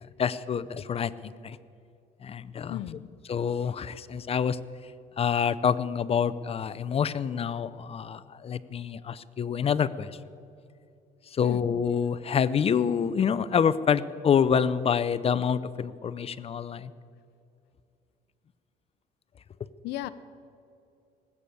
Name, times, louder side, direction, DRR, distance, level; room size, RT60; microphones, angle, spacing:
voice 1, 0.2-1.6 2.2-2.8 3.3-4.6 5.2-10.1 11.3-16.9, left 7 dB, 35° left, 16 dB, 0.5 m, -27 dB
voice 2, 2.7-3.1 11.4-11.6 19.8-20.1, left 14 dB, 80° left, 12 dB, 0.6 m, -35 dB
19.0 x 8.4 x 7.9 m, 2.6 s
cardioid pair, 110°, 17 cm